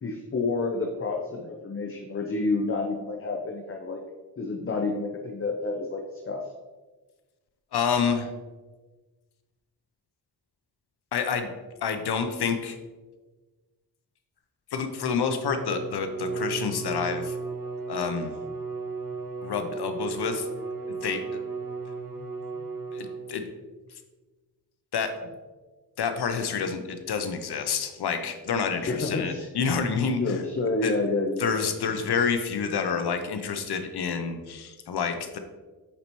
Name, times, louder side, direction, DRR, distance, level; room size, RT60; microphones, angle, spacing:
voice 1, 0.0-4.0 4.4-6.5 28.8-29.5 30.2-32.0, left 3 dB, 35° left, 2 dB, 0.7 m, -29 dB
voice 2, 7.7-8.3 11.1-11.5 11.8-12.8 14.7-17.4 17.9-18.3 19.4-20.5 21.0-21.2 22.9-23.4 23.9-24.0 24.9-25.3 26.0-30.4 30.8-30.9 31.4-35.4, left 6 dB, 75° left, 7 dB, 0.7 m, -28 dB
Bowed string instrument, 15.2-23.5, right 4 dB, 55° right, 1.3 m, -35 dB
8.6 x 4.1 x 3.0 m, 1.3 s
cardioid pair, 75°, 40 cm